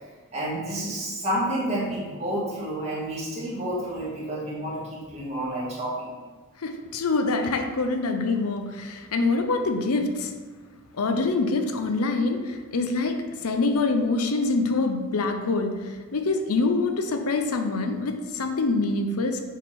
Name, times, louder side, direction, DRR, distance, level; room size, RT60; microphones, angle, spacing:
voice 1, 0.3-6.1, right 1 dB, 30° right, -7 dB, 1.9 m, -30 dB
voice 2, 6.6-10.3 10.9-19.4, left 3 dB, 80° left, 6 dB, 0.6 m, -25 dB
7.2 x 3.7 x 4.2 m, 1.3 s
head